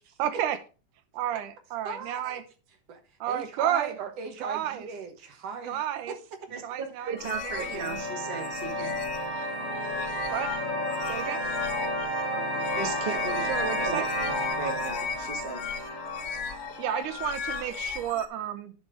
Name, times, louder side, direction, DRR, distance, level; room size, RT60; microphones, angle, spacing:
voice 1, 0.2-0.6 1.2-2.4 3.2-4.0 4.4-4.9 5.6-6.1 6.6-8.0 10.3-10.5 11.1-11.4 13.5-14.1 16.8-18.7, right 11 dB, 85° right, 2.5 m, -31 dB
voice 2, 1.9-2.3 2.9-3.0 3.3-5.8 6.1-6.6, right 5 dB, 60° right, 2.1 m, -37 dB
voice 3, 6.5-9.0 12.8-13.4 13.8-15.7, right 5 dB, 35° right, 0.9 m, -36 dB
sound 1, 7.0-18.0, equal, 15° left, 2.1 m, -32 dB
sound 2, 7.2-18.3, left 7 dB, 70° left, 1.4 m, -37 dB
sound 3, 9.5-16.5, equal, 15° right, 3.0 m, -47 dB
10.0 x 5.2 x 5.0 m
omnidirectional pair, 3.5 m